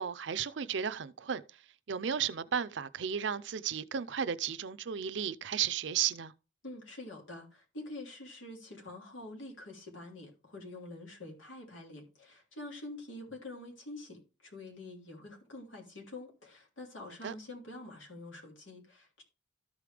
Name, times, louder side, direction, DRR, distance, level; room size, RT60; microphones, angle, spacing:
voice 1, 0.0-1.4 1.9-6.3 17.2-17.3, right 8 dB, 70° right, 0.5 m, -34 dB
voice 2, 6.6-19.2, left 2 dB, 90° left, 3.1 m, -46 dB
13.5 x 5.0 x 3.4 m
head